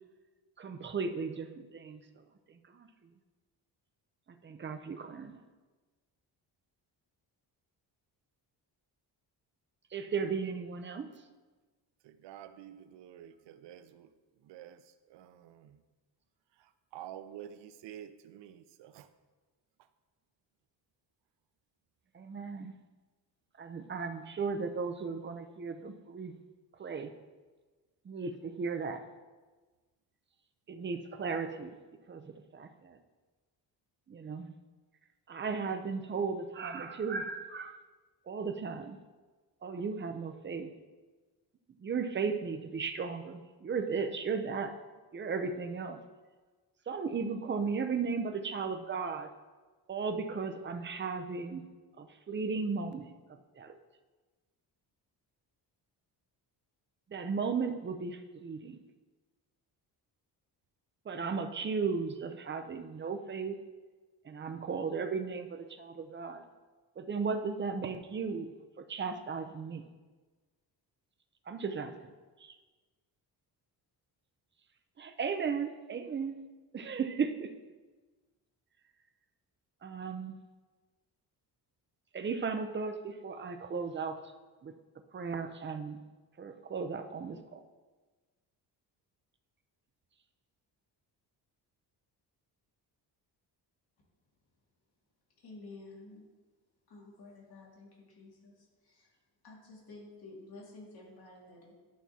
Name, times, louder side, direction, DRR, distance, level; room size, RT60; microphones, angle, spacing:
voice 1, 0.6-2.0 2.7-2.9 4.4-5.4 9.9-11.1 22.1-22.7 23.6-26.3 26.8-27.1 28.0-29.0 30.7-31.7 32.1-33.0 34.1-34.5 35.3-37.8 38.3-39.0 39.6-40.7 41.8-44.7 45.1-46.0 46.9-49.3 49.9-51.6 52.0-53.1 53.6-53.7 57.1-58.8 61.1-63.6 64.3-66.4 67.0-68.5 68.8-69.8 71.5-71.9 72.4-72.5 75.0-76.4 76.7-77.5 79.8-80.3 82.1-84.1 84.6-84.7 85.1-86.0 86.4-87.6, right 5 dB, 25° right, 0.6 m, -35 dB
voice 2, 12.2-14.1 14.5-14.8 15.1-15.5 16.9-19.1, right 10 dB, 85° right, 0.6 m, -48 dB
voice 3, 95.4-96.2 96.9-98.5 98.8-99.1 99.4-101.7, left 2 dB, 60° left, 2.3 m, -51 dB
11.5 x 6.0 x 2.8 m
cardioid pair, 130°, 42 cm